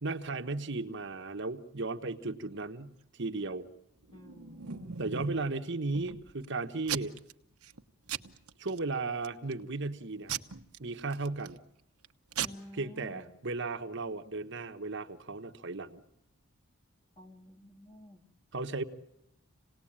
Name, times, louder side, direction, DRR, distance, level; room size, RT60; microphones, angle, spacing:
voice 1, 0.0-3.7 5.0-7.1 8.6-10.3 10.8-11.6 12.8-16.0 18.5-18.8, right 3 dB, 55° right, 7 dB, 1.1 m, -35 dB
voice 2, 4.1-5.0 12.4-13.4 17.2-18.4, left 1 dB, 25° left, 5 dB, 2.1 m, -52 dB
Packing tape duct tape / Tearing, 4.1-5.5 5.9-6.4 6.9-7.3 7.6-7.8 8.1-8.8 9.2-9.6 10.3-11.6 12.0-12.1 12.3-12.5, right 8 dB, 85° right, 1.1 m, -38 dB
27.5 x 19.0 x 8.8 m, 0.83 s
head